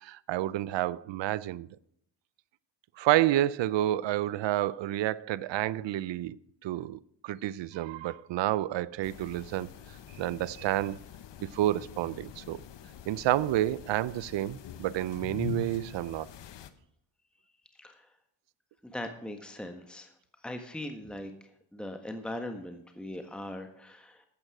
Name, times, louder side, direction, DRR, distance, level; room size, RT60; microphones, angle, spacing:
voice 1, 0.0-1.7 3.0-6.4 6.6-9.7 10.2-11.0 11.5-12.6 13.1-16.3, right 14 dB, 70° right, 0.6 m, -29 dB
sound 1, 9.0-16.7, left 10 dB, 65° left, 1.1 m, -44 dB
voice 2, 17.8-18.1 18.8-20.1 20.4-21.3 21.7-24.2, left 1 dB, ahead, 1.4 m, -40 dB
13.0 x 8.8 x 4.8 m
cardioid pair, 65°, 46 cm